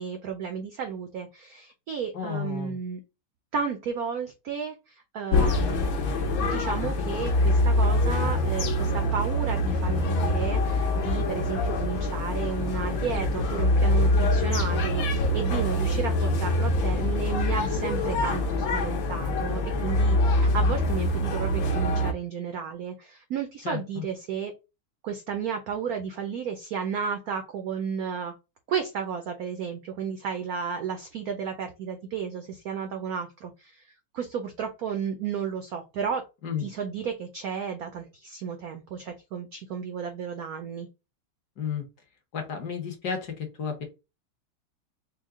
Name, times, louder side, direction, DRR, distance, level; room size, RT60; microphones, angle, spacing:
voice 1, 0.0-3.0 3.5-6.0 6.4-24.5 25.0-28.3 28.7-36.3 36.6-40.9, right 6 dB, 90° right, 6 dB, 0.8 m, -33 dB
voice 2, 2.1-2.8 23.6-24.0 36.4-36.7 41.6-41.9 42.3-43.8, left 7 dB, 60° left, 3 dB, 1.2 m, -32 dB
sound 1, 5.3-22.1, left 1 dB, 75° left, 1.6 m, -24 dB
4.6 x 2.1 x 3.5 m, 0.27 s
omnidirectional pair, 2.3 m